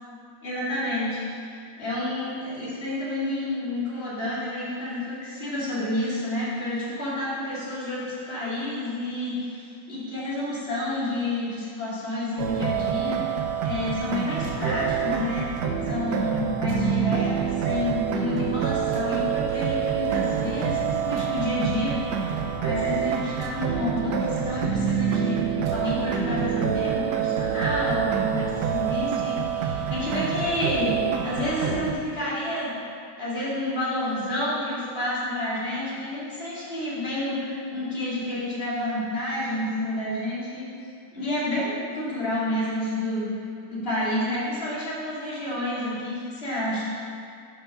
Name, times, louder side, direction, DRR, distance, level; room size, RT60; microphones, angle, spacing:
voice 1, 0.4-15.5 15.9-30.9 31.2-32.7 33.2-40.7 41.1-43.3 43.7-46.9, left 1 dB, 30° left, -9 dB, 2.4 m, -29 dB
sound 1, 12.4-31.9, right 8 dB, 70° right, 1.1 m, -27 dB
sound 2, 14.4-31.9, right 3 dB, 85° right, 1.6 m, -40 dB
6.9 x 5.8 x 5.8 m, 2.4 s
omnidirectional pair, 2.2 m